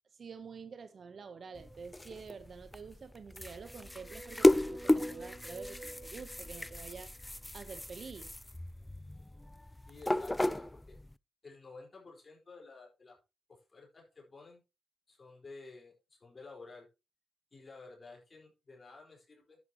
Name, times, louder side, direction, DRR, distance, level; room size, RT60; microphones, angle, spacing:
voice 1, 0.1-7.1 7.5-8.3, right 5 dB, 55° right, 0.9 m, -48 dB
sound 1, 0.9-2.5 3.4-7.3, right 2 dB, 40° right, 1.9 m, -51 dB
sound 2, 1.6-11.1, left 1 dB, 10° left, 0.4 m, -33 dB
voice 2, 9.9-11.0 11.4-13.2 13.5-14.6 15.1-16.9 17.5-19.6, left 3 dB, 40° left, 4.5 m, -53 dB
10.5 x 9.4 x 3.0 m
supercardioid pair, 55°, 0 cm